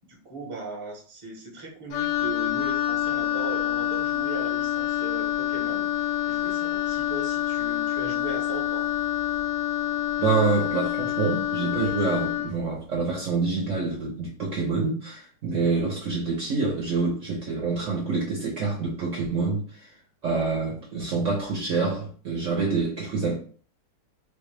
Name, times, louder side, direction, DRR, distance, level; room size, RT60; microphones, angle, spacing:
voice 1, 0.1-8.9, right 2 dB, 25° right, 0.9 m, -38 dB
Wind instrument woodwind instrument, 1.9-12.6, left 12 dB, 85° left, 1.3 m, -27 dB
voice 2, 10.2-19.9 20.2-23.3, right 4 dB, 55° right, 1.0 m, -26 dB
4.1 x 2.5 x 3.3 m
omnidirectional pair, 1.9 m